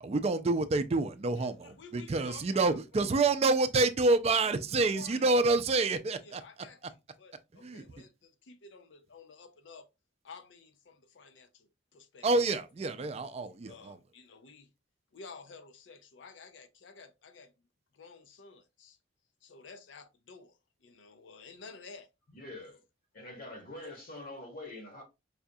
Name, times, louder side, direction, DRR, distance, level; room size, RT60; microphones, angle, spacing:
voice 1, 0.0-6.4 7.6-7.8 12.2-14.0, right 3 dB, 35° right, 0.4 m, -28 dB
voice 2, 1.4-3.1 4.4-4.5 4.9-5.2 6.2-6.8 7.2-9.9 10.2-12.3 13.6-14.7 15.1-17.7 17.9-19.0 19.4-22.1 22.7-22.8 23.8-23.9, left 4 dB, 85° left, 0.5 m, -52 dB
voice 3, 22.3-22.8 23.1-25.0, left 2 dB, 50° left, 1.0 m, -45 dB
4.8 x 2.3 x 2.6 m
head